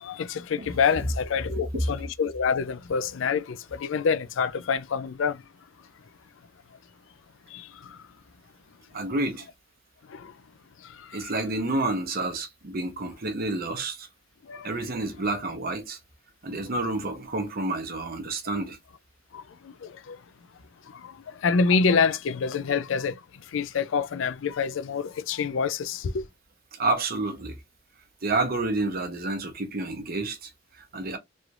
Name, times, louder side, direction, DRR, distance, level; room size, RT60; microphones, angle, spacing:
voice 1, 0.0-5.4 7.5-7.7 10.1-10.3 11.2-11.3 14.5-14.7 19.3-19.4 19.8-20.2 21.0-21.1 21.4-23.1 23.5-26.2, left 5 dB, 70° left, 0.4 m, -26 dB
voice 2, 8.9-9.5 11.1-14.1 14.6-16.0 16.4-18.8 26.7-27.6 28.2-31.2, right 2 dB, 50° right, 0.8 m, -29 dB
3.2 x 2.5 x 2.9 m
head